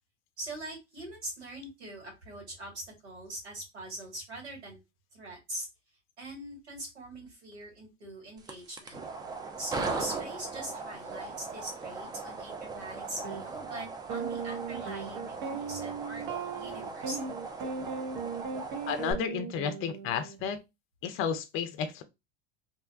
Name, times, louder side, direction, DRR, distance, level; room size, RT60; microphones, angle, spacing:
voice 1, 0.4-4.8 5.1-5.7 6.2-9.0 9.6-16.3 16.5-17.3, right 1 dB, 80° right, 1.8 m, -42 dB
sound 1, 8.4-19.1, right 3 dB, 10° right, 0.4 m, -39 dB
sound 2, 13.2-13.4 14.1-20.4, right 5 dB, 50° right, 0.7 m, -37 dB
voice 2, 18.9-20.6 21.0-22.0, left 7 dB, 40° left, 0.5 m, -32 dB
2.8 x 2.2 x 2.4 m
hypercardioid pair, 85°, 34 cm